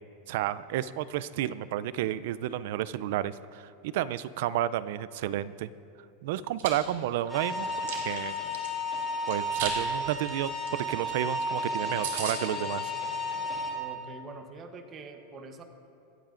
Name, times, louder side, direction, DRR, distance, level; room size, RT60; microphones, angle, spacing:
voice 1, 0.3-5.7 6.2-7.7 7.9-8.3 9.3-12.9, right 12 dB, 65° right, 17 dB, 0.4 m, -31 dB
Chewing mastication, 6.3-6.7 7.2-8.7 9.3-9.8 10.1-10.3 10.7-10.8 11.0-11.1 11.5-11.6 11.7-11.8 12.0-12.4, right 7 dB, 85° right, 2.2 m, -35 dB
sound 1, 7.3-13.7, left 1 dB, 10° left, 2.6 m, -33 dB
voice 2, 13.7-15.6, right 3 dB, 25° right, 6 dB, 0.9 m, -45 dB
25.5 x 8.8 x 2.5 m, 2.7 s
supercardioid pair, 150°, 0 cm